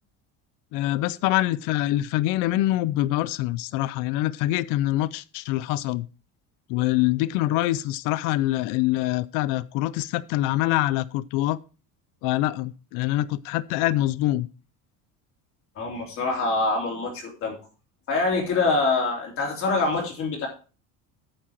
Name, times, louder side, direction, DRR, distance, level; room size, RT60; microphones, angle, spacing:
voice 1, 0.7-6.1 6.7-11.6 12.2-14.5, left 15 dB, 60° left, 0.5 m, -25 dB
voice 2, 15.7-17.6 18.1-20.5, left 3 dB, 40° left, 3.3 m, -25 dB
8.8 x 7.4 x 4.5 m
cardioid pair, 175°, 35 cm